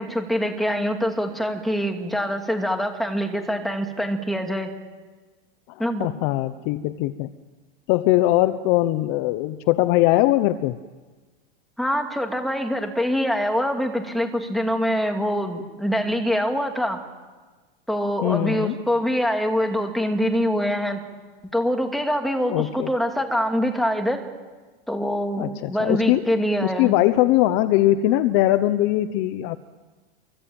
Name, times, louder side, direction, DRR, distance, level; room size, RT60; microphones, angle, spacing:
voice 1, 0.0-4.7 5.8-6.1 11.8-17.0 17.9-21.0 21.5-24.2 24.9-26.9, equal, ahead, 3 dB, 2.6 m, -24 dB
voice 2, 5.7-7.3 7.9-10.8 18.2-18.8 22.5-22.9 25.4-26.3 26.6-29.6, left 15 dB, 40° left, 13 dB, 0.9 m, -21 dB
27.5 x 24.5 x 8.9 m, 1.3 s
supercardioid pair, 155°, 30 cm